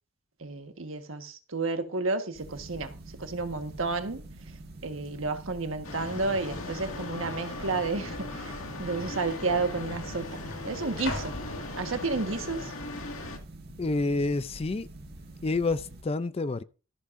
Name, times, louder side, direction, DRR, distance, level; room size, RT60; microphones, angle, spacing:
voice 1, 0.4-2.9 3.2-4.2 4.8-11.3 11.8-12.7, right 3 dB, 70° right, 1.4 m, -31 dB
sound 1, 2.3-16.0, right 2 dB, 50° right, 1.7 m, -46 dB
sound 2, 3.6-3.7 3.9-4.3 5.0-5.1 5.9-6.4 6.7-6.8 7.7-7.8 8.8-8.9 9.1-12.4 12.9-13.3, left 2 dB, 60° left, 3.4 m, -43 dB
sound 3, 5.8-13.4, left 2 dB, 85° left, 2.0 m, -38 dB
voice 2, 13.8-14.9 15.4-16.6, left 3 dB, 30° left, 0.4 m, -28 dB
14.0 x 11.0 x 2.6 m
head